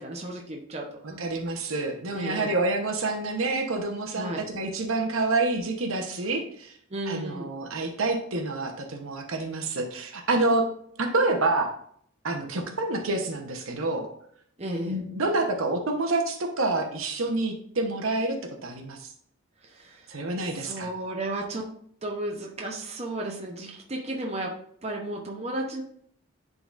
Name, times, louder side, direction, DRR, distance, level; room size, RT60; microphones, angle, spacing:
voice 1, 0.0-1.2 2.1-2.5 4.1-4.5 6.9-7.5 14.6-15.0 19.6-20.0 20.6-21.7 22.0-24.6 24.8-25.8, right 1 dB, 30° right, 0 dB, 0.8 m, -33 dB
voice 2, 1.2-6.7 7.1-10.7 11.0-11.7 12.2-14.1 14.8-19.1 20.1-20.9, right 2 dB, 70° right, 4 dB, 1.0 m, -28 dB
10.5 x 3.9 x 2.5 m, 0.64 s
head